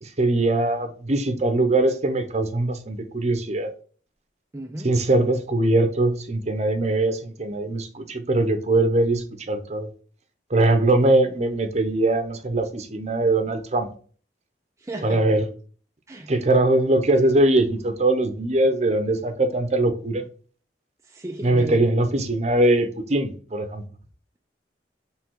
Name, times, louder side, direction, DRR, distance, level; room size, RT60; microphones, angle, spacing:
voice 1, 0.0-3.7 4.8-9.9 10.5-13.9 15.0-15.5 16.3-20.2 21.4-23.8, right 2 dB, 40° right, 0.8 m, -21 dB
voice 2, 4.5-4.9 14.8-15.4 16.1-16.3 21.1-21.9, right 1 dB, 15° right, 0.5 m, -34 dB
6.7 x 3.4 x 4.6 m
head